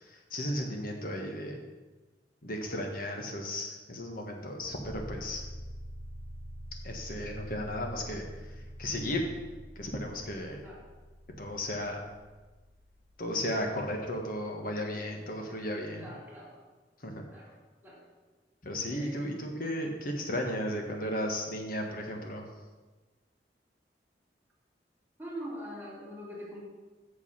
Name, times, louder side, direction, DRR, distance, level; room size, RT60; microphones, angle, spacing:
voice 1, 0.3-1.6 2.4-5.4 6.8-8.2 8.8-9.2 9.7-10.6 11.4-12.0 13.2-16.1 17.0-17.2 18.6-22.5, left 1 dB, 55° left, 2 dB, 1.3 m, -34 dB
sound 1, 4.6-13.6, equal, 45° right, 1.8 m, -46 dB
voice 2, 16.0-16.6 17.3-17.5 17.8-18.0 18.9-19.2 25.2-26.6, equal, 10° right, -5 dB, 2.2 m, -43 dB
7.6 x 6.6 x 5.6 m, 1.3 s
head